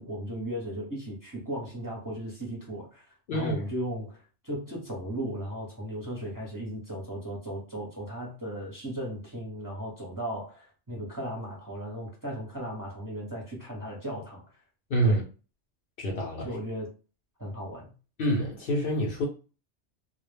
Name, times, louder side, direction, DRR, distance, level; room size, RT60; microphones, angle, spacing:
voice 1, 0.0-14.4 15.0-15.2 16.4-16.9 17.4-17.9, equal, 20° right, 0.7 m, -36 dB
voice 2, 3.3-3.6 14.9-15.2 16.0-16.5 18.2-19.3, right 1 dB, 60° left, 0.7 m, -27 dB
2.1 x 2.1 x 3.2 m
omnidirectional pair, 1.2 m